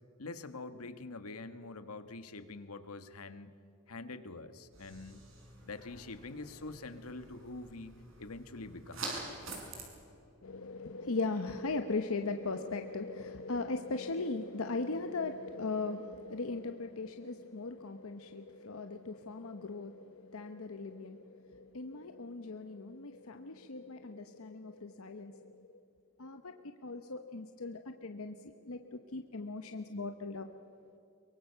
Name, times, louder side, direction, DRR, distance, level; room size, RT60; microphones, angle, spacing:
voice 1, 0.2-3.5 3.9-5.2 5.6-7.9 8.2-9.1, left 3 dB, 85° left, 10 dB, 1.4 m, -45 dB
sound 1, 4.7-9.8, right 3 dB, 60° right, 5.8 m, -46 dB
voice 2, 10.4-25.7 26.2-26.5 26.8-28.4 28.6-28.8 29.1-30.5, left 3 dB, 70° left, 7 dB, 0.9 m, -38 dB
23.5 x 23.0 x 6.8 m, 2.7 s
head